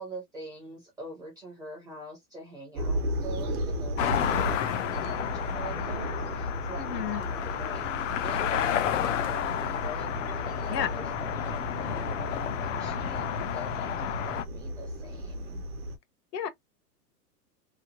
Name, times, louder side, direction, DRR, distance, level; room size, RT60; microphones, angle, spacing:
voice 1, 0.0-15.6, right 1 dB, 10° right, 0.6 m, -44 dB
sound 1, 2.8-16.0, equal, 60° right, 0.9 m, -35 dB
sound 2, 4.0-14.4, left 10 dB, 50° left, 0.4 m, -31 dB
voice 2, 6.8-7.2 10.7-10.9 16.3-16.5, left 9 dB, 75° left, 1.0 m, -31 dB
3.1 x 2.1 x 2.3 m
hypercardioid pair, 155°, 50 cm